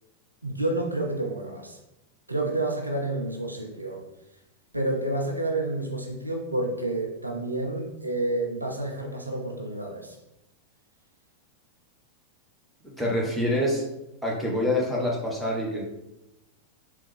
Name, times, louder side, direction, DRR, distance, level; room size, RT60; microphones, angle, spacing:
voice 1, 0.4-1.8 2.3-4.1 4.7-10.2, right 2 dB, 85° right, 1 dB, 0.5 m, -29 dB
voice 2, 13.0-13.8 14.2-15.8, left 1 dB, ahead, -4 dB, 1.2 m, -26 dB
3.8 x 3.1 x 3.3 m, 0.90 s
figure-of-eight pair, 90°, 0 cm